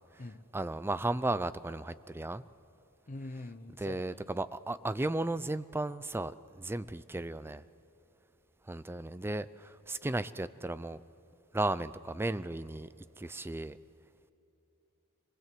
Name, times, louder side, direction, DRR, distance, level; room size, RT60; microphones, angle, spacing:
voice 1, 0.5-2.4 3.8-7.6 8.7-11.0 11.5-13.8, right 2 dB, 10° right, 15 dB, 0.4 m, -35 dB
voice 2, 3.1-4.3, left 2 dB, 35° left, 7 dB, 0.7 m, -44 dB
24.5 x 20.0 x 7.6 m, 3.0 s
head